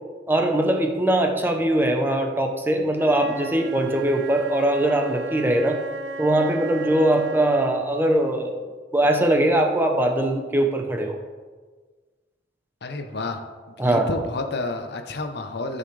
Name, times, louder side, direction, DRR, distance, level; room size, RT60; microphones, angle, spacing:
voice 1, 0.3-5.8 6.2-8.6 8.9-11.2 13.8-14.1, right 1 dB, 10° right, 3 dB, 0.8 m, -21 dB
Wind instrument woodwind instrument, 2.9-7.9, right 2 dB, 70° right, 1.1 m, -35 dB
voice 2, 12.8-13.4 13.7-15.8, left 2 dB, 65° left, 6 dB, 0.8 m, -30 dB
13.0 x 5.7 x 3.3 m, 1.4 s
head